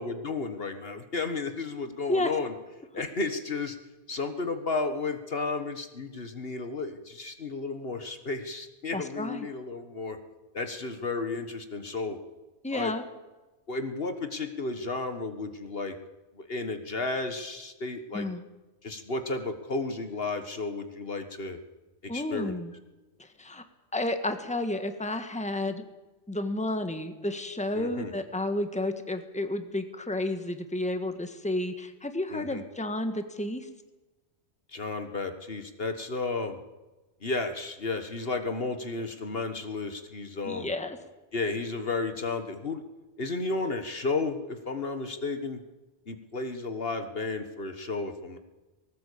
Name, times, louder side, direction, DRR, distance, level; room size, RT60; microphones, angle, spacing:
voice 1, 0.0-2.5 2.9-3.8 4.1-10.2 10.5-12.2 12.7-12.9 13.7-15.9 16.4-18.3 18.8-21.6 22.0-22.5 27.7-28.1 32.3-32.6 34.7-36.6 37.2-40.7 41.3-42.8 43.2-45.6 46.1-48.4, left 3 dB, 55° left, 8 dB, 1.7 m, -33 dB
voice 2, 8.9-9.5 12.6-13.0 18.1-18.4 22.1-22.7 23.2-23.6 23.9-25.8 26.3-33.7 40.4-41.0, left 1 dB, 5° left, 7 dB, 1.6 m, -31 dB
19.5 x 18.5 x 8.5 m, 1.1 s
omnidirectional pair, 1.2 m